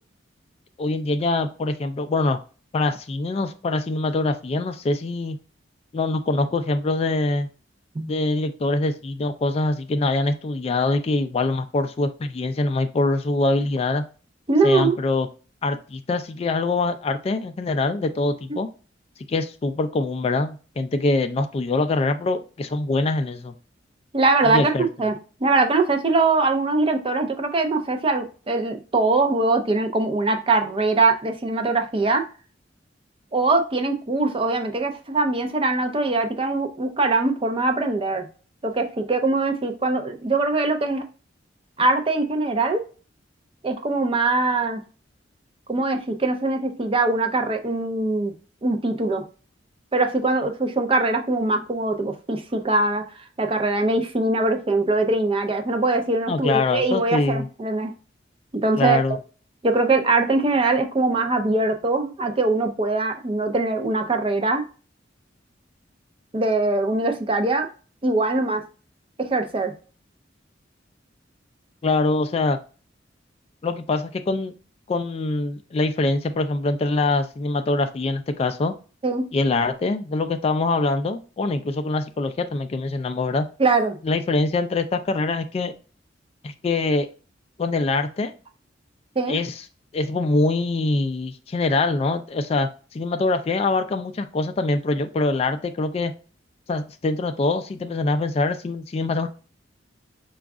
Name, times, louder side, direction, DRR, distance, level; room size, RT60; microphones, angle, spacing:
voice 1, 0.8-2.4 2.7-5.4 5.9-7.5 8.1-14.0 14.6-15.3 15.6-18.7 19.3-23.5 24.4-24.9 56.3-57.5 58.8-59.2 71.8-72.6 73.6-74.5 74.9-78.7 79.3-83.5 84.0-85.7 86.4-87.1 87.6-88.3 89.3-89.6 89.9-96.1 96.7-99.3, left 2 dB, 35° left, 8 dB, 0.3 m, -24 dB
voice 2, 14.5-15.0 24.1-25.1 25.4-32.2 33.3-38.2 38.6-41.1 41.8-42.8 43.6-44.8 45.7-48.3 48.6-49.2 49.9-53.0 53.4-57.9 58.5-59.0 59.6-64.6 66.3-67.7 68.0-68.6 69.2-69.7 79.0-79.3 83.6-84.0 89.2-89.4, right 3 dB, 30° right, 6 dB, 0.5 m, -22 dB
5.0 x 2.3 x 3.5 m, 0.36 s
head